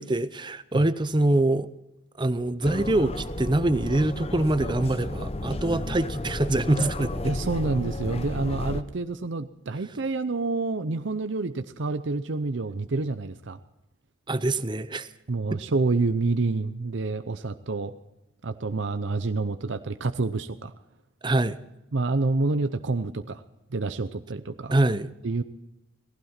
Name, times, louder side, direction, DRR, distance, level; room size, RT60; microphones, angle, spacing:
voice 1, 0.0-1.7 2.2-7.3 14.3-15.1 15.5-15.6 21.2-21.6 24.7-25.1, right 2 dB, 25° right, 13 dB, 0.7 m, -24 dB
sound 1, 2.6-8.8, left 2 dB, 30° left, 0.7 m, -32 dB
voice 2, 7.2-13.6 15.3-17.9 18.4-20.7 21.9-23.4 23.7-24.7 25.2-25.4, right 3 dB, 70° right, 10 dB, 0.7 m, -28 dB
18.5 x 16.0 x 4.4 m, 0.95 s
head